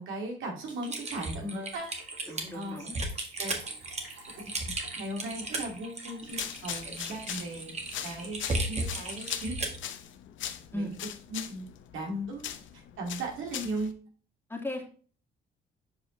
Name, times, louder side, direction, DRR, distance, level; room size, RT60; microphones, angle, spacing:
voice 1, 0.0-1.9 2.5-2.9 3.4-3.6 4.0-4.5 5.0-7.7 8.0-9.6 10.7-10.9 11.3-11.7 11.9-12.5 13.0-14.0, right 1 dB, 85° right, 0 dB, 2.5 m, -37 dB
sound 1, 0.7-7.3, right 3 dB, 70° right, 2.7 m, -50 dB
Typing, 0.9-9.8, right 2 dB, 35° right, 1.7 m, -35 dB
voice 2, 2.3-3.0 10.7-10.9 14.5-14.9, left 1 dB, 10° left, 0 dB, 2.1 m, -36 dB
sound 2, 6.2-13.9, left 10 dB, 75° left, 0.7 m, -41 dB
7.6 x 5.0 x 3.2 m, 0.41 s
cardioid pair, 90°, 20 cm